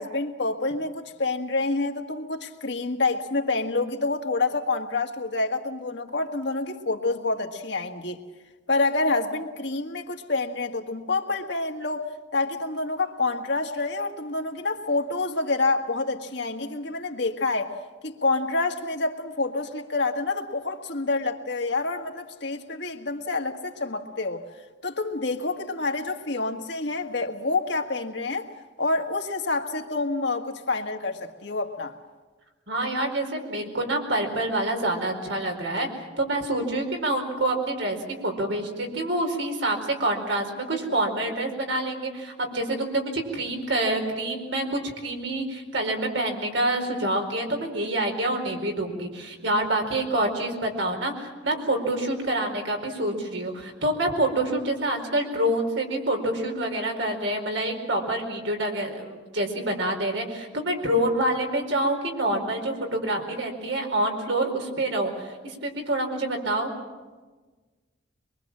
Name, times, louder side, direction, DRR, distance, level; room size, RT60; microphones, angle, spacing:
voice 1, 0.0-8.2 8.7-12.0 12.3-17.7 18.0-24.5 24.8-28.5 28.8-31.9, left 3 dB, 65° left, 4 dB, 1.7 m, -27 dB
voice 2, 32.7-66.7, right 1 dB, 80° right, 3 dB, 4.7 m, -27 dB
24.0 x 23.5 x 7.4 m, 1.3 s
head